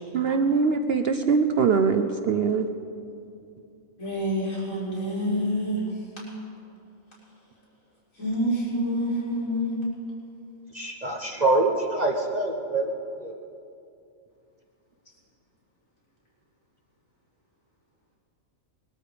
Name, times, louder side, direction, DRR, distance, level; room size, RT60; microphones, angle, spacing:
voice 1, 0.1-2.7, right 5 dB, 55° right, 8 dB, 0.8 m, -22 dB
voice 2, 4.0-5.8 8.2-9.8, equal, 70° left, -8 dB, 5.5 m, -27 dB
voice 3, 10.7-12.9 13.2-13.3, right 2 dB, 35° right, 2 dB, 1.0 m, -25 dB
21.0 x 12.5 x 5.0 m, 2.6 s
omnidirectional pair, 1.4 m